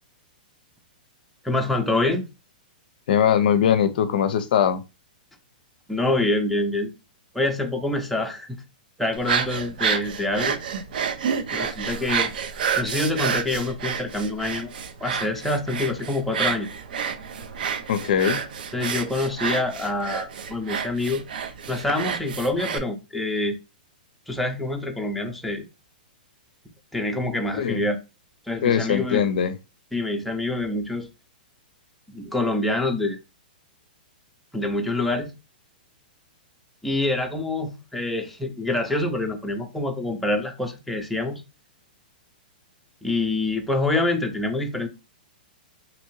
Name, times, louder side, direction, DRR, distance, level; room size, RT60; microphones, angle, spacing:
voice 1, 1.4-2.2 5.9-6.9 7.3-8.6 9.0-10.6 11.5-12.3 12.8-14.7 15.0-16.7 18.7-21.2 21.7-23.6 24.3-25.6 26.9-28.0 28.5-29.2 29.9-31.1 32.1-33.2 34.5-35.3 36.8-41.4 43.0-44.9, left 2 dB, ahead, 0.5 m, -26 dB
voice 2, 3.1-4.8 17.9-18.4 27.5-27.9 28.6-29.6, left 8 dB, 65° left, 0.4 m, -21 dB
sound 1, 9.1-22.8, right 7 dB, 70° right, 0.5 m, -29 dB
2.8 x 2.6 x 2.9 m
hypercardioid pair, 135°, 5 cm